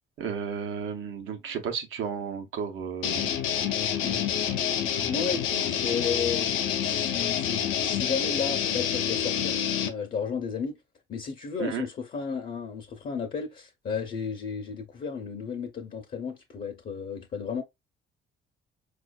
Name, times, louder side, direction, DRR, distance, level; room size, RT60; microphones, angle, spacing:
voice 1, 0.2-3.4 11.6-11.8, right 7 dB, 80° right, 0.8 m, -33 dB
sound 1, 3.0-9.9, left 9 dB, 90° left, 0.5 m, -27 dB
voice 2, 4.0-4.3 4.7-10.8 11.1-17.6, left 6 dB, 45° left, 0.6 m, -33 dB
4.5 x 2.4 x 2.3 m
cardioid pair, 90°, 20 cm